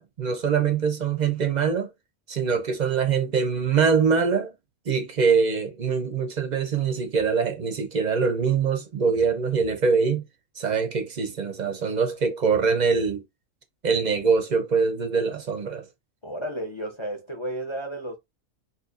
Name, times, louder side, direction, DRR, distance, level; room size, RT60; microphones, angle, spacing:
voice 1, 0.0-1.9 2.3-4.5 4.9-10.2 10.6-13.2 13.8-15.8, right 5 dB, 50° right, 0.5 m, -23 dB
voice 2, 16.2-18.2, right 1 dB, 35° left, 0.4 m, -32 dB
4.3 x 2.5 x 2.4 m
omnidirectional pair, 1.4 m